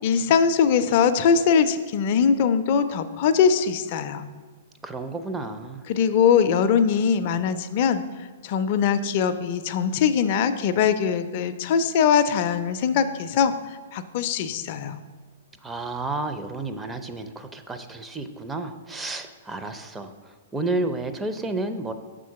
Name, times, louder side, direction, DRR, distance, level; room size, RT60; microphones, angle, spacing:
voice 1, 0.0-4.3 5.9-8.0 8.4-13.5 13.9-15.0, left 7 dB, 45° left, 11 dB, 0.4 m, -21 dB
voice 2, 4.8-5.9 15.6-21.9, right 2 dB, 10° right, 7 dB, 0.4 m, -31 dB
6.1 x 3.7 x 5.7 m, 1.4 s
figure-of-eight pair, 115°, 0 cm